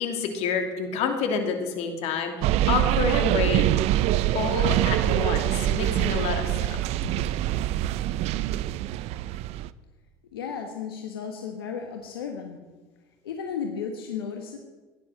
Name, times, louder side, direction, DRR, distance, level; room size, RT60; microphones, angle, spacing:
voice 1, 0.0-3.7 4.3-6.8, left 5 dB, 65° left, 5 dB, 2.8 m, -28 dB
sound 1, 2.4-9.7, right 14 dB, 60° right, 0.6 m, -24 dB
voice 2, 10.3-12.6 13.2-14.6, left 6 dB, 90° left, 3 dB, 1.4 m, -34 dB
16.5 x 11.0 x 6.5 m, 1.3 s
hypercardioid pair, 75°, 12 cm